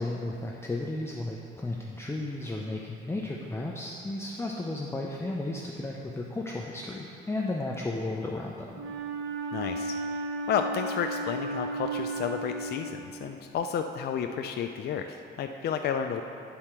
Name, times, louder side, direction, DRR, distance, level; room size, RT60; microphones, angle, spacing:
voice 1, 0.0-8.8, left 2 dB, 15° left, -1 dB, 0.6 m, -34 dB
Wind instrument woodwind instrument, 8.7-13.5, right 2 dB, 80° right, 0.7 m, -34 dB
voice 2, 9.5-10.0 10.5-16.2, left 7 dB, 55° left, 5 dB, 0.4 m, -31 dB
8.6 x 4.4 x 5.9 m, 2.5 s
cardioid pair, 90°, 20 cm